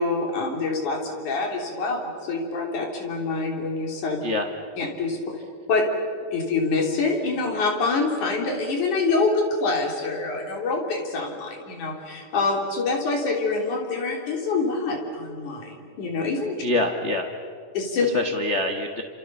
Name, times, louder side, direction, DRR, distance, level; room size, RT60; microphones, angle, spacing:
voice 1, 0.0-4.2 4.8-5.2 5.7-5.9 6.3-16.6 17.7-18.1, left 3 dB, 85° left, 1 dB, 4.9 m, -26 dB
voice 2, 16.6-17.3 18.0-19.0, left 2 dB, 40° left, 4 dB, 1.0 m, -25 dB
30.0 x 28.0 x 7.0 m, 2.2 s
omnidirectional pair, 3.4 m